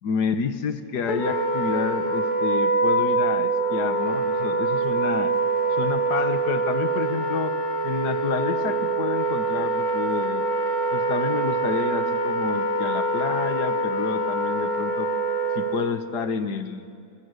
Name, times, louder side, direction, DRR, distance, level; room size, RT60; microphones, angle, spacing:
voice 1, 0.0-5.3 5.7-7.6 7.8-10.5 10.9-15.1 15.6-16.9, left 6 dB, 85° left, 10 dB, 1.9 m, -29 dB
Wind instrument woodwind instrument, 1.1-16.0, right 2 dB, 70° left, 2.7 m, -24 dB
25.0 x 20.5 x 8.2 m, 2.4 s
omnidirectional pair, 1.7 m